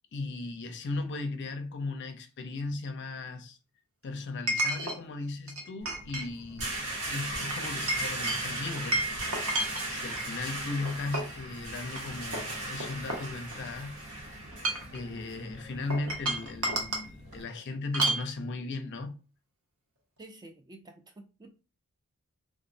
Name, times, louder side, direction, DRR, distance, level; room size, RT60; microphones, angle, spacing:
voice 1, 0.1-3.6 4.0-6.8 7.1-9.6 9.9-13.9 14.9-19.1, left 3 dB, 50° left, 0.5 m, -37 dB
Chink clink, 1.0-1.1 4.5-5.0 5.5-6.3 6.6-6.8 7.5-10.3 10.9-11.4 11.9-12.0 12.3-13.8 14.5-15.0 15.9-17.1 17.9-18.3, right 1 dB, 65° right, 0.8 m, -31 dB
sound 1, 5.8-17.4, right 2 dB, 85° right, 1.1 m, -38 dB
voice 2, 20.2-21.5, right 2 dB, 20° right, 0.3 m, -50 dB
3.4 x 2.0 x 2.6 m
head